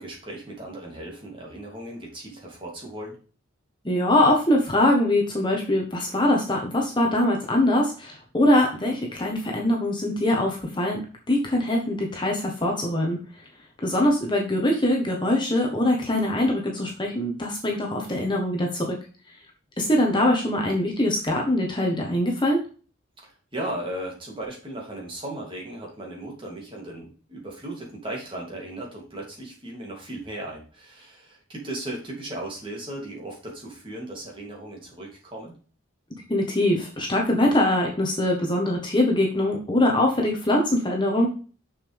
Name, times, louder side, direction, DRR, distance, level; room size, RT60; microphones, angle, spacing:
voice 1, 0.0-3.2 23.2-35.6, right 1 dB, 25° right, -2 dB, 3.0 m, -36 dB
voice 2, 3.8-11.0 11.3-13.2 13.8-19.0 19.8-22.6 36.3-41.3, left 1 dB, 25° left, 0 dB, 1.4 m, -23 dB
6.9 x 6.7 x 3.6 m, 0.38 s
head